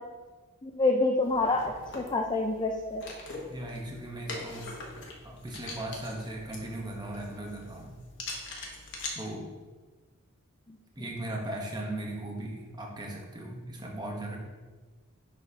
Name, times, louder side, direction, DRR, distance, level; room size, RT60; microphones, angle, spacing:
voice 1, 0.6-3.0 10.7-10.8, left 2 dB, 20° left, 2 dB, 0.4 m, -27 dB
sound 1, 1.2-9.1, left 2 dB, 55° left, 1.2 m, -43 dB
voice 2, 3.5-4.7 5.2-7.9 9.1-9.5 11.0-14.4, right 1 dB, 20° right, -1 dB, 0.9 m, -38 dB
10.5 x 4.0 x 2.8 m, 1.3 s
head